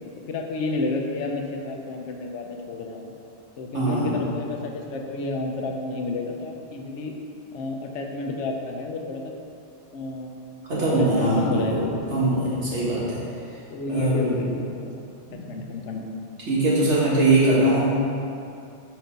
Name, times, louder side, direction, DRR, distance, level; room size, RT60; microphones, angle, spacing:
voice 1, 0.3-3.1 3.6-7.1 7.5-9.3 9.9-10.3 11.0-12.0 13.7-14.9 15.5-16.1, left 3 dB, 80° left, 2 dB, 1.0 m, -30 dB
voice 2, 3.7-4.2 10.7-11.7 12.1-13.2 13.9-14.3 15.3-15.6 16.5-17.8, right 2 dB, 75° right, -8 dB, 2.0 m, -21 dB
5.2 x 4.4 x 5.2 m, 2.6 s
omnidirectional pair, 1.2 m